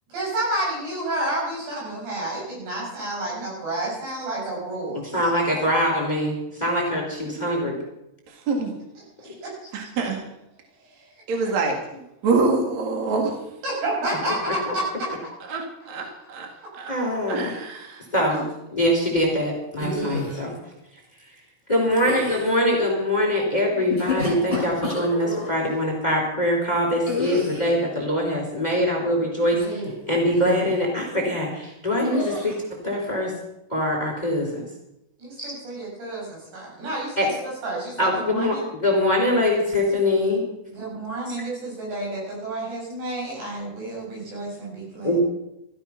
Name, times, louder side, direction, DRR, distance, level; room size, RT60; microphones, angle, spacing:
voice 1, 0.1-5.0 9.4-9.5 13.6-15.1 16.6-16.7 35.2-38.6 40.7-45.2, right 1 dB, 85° right, -4 dB, 9.3 m, -30 dB
voice 2, 5.1-7.8 14.7-14.8 16.9-17.5 18.1-18.4 18.7-20.5 21.7-32.6 32.8-33.3 33.7-34.6 35.4-35.5 37.2-37.3 38.0-38.5 38.8-40.4 45.0-45.2, left 1 dB, 10° left, -1 dB, 3.3 m, -23 dB
voice 3, 8.3-8.7 9.2-9.3 9.7-10.2 11.3-11.8 12.2-13.3 15.5-16.5 16.7-16.9 17.3-18.0 18.3-18.5, right 3 dB, 50° right, 2 dB, 2.8 m, -25 dB
sound 1, 19.8-20.4 21.9-22.5 23.8-25.5 27.0-27.8 29.5-30.0 30.3-30.7 32.1-32.6, left 2 dB, 10° right, 4.8 m, -29 dB
14.5 x 14.0 x 5.9 m, 0.88 s
omnidirectional pair, 4.9 m